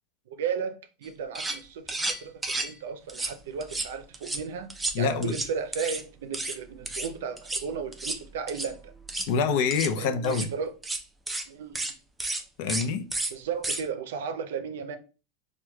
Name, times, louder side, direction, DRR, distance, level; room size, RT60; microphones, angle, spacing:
voice 1, 0.3-8.9 10.0-10.7 11.5-11.8 13.3-15.0, right 6 dB, 85° right, 0.5 m, -35 dB
sound 1, 1.0-1.1 1.3-1.6 1.9-2.7 3.1-3.3 3.6-4.4 4.7-6.0 6.3-6.6 6.8-7.1 7.4-7.6 7.9-8.2 8.5-8.7 9.0-9.3 9.7-9.9 10.2-10.5 10.8-11.0 11.3-11.4 11.7-11.9 12.2-12.4 12.7-12.9 13.1-13.3 13.6-13.8, right 2 dB, 10° right, 0.4 m, -32 dB
voice 2, 4.9-5.4 9.3-10.5 12.6-13.0, left 5 dB, 60° left, 0.5 m, -26 dB
4.5 x 2.2 x 2.2 m
supercardioid pair, 135°, 0 cm